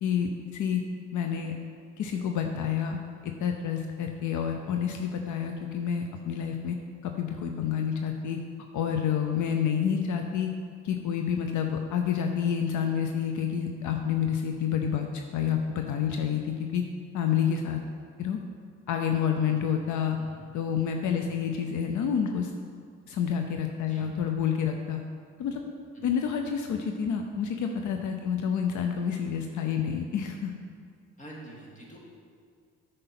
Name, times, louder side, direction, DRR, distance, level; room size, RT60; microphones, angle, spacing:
voice 1, 0.0-0.8 1.1-1.5 2.0-3.0 3.2-6.8 7.0-8.4 8.7-10.5 10.8-16.8 17.1-17.8 18.2-18.4 18.9-20.2 20.5-22.5 23.1-25.0 25.4-25.6 26.0-30.5, left 8 dB, 75° left, 4 dB, 0.7 m, -28 dB
voice 2, 19.4-19.8 20.2-20.4 21.1-21.3 23.9-24.1 25.9-26.2 28.2-28.3 31.2-32.0, right 1 dB, 25° left, -3 dB, 2.4 m, -47 dB
9.1 x 5.5 x 5.9 m, 2.1 s
cardioid pair, 90°, 30 cm